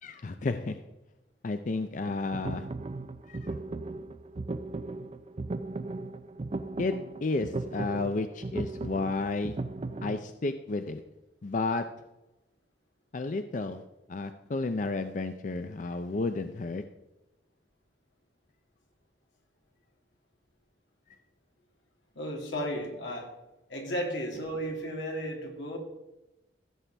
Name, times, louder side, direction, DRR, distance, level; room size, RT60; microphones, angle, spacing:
voice 1, 0.0-0.8 1.4-2.7 3.3-3.4 6.8-6.9 7.2-9.6 10.0-11.0 11.4-11.8 13.1-13.8 14.1-16.8, left 3 dB, 45° left, 9 dB, 0.5 m, -32 dB
sound 1, 2.1-10.2, right 2 dB, 35° right, 0.4 m, -37 dB
voice 2, 22.1-23.3 23.7-25.8, equal, 90° left, 1 dB, 2.4 m, -34 dB
15.5 x 7.4 x 3.4 m, 0.98 s
head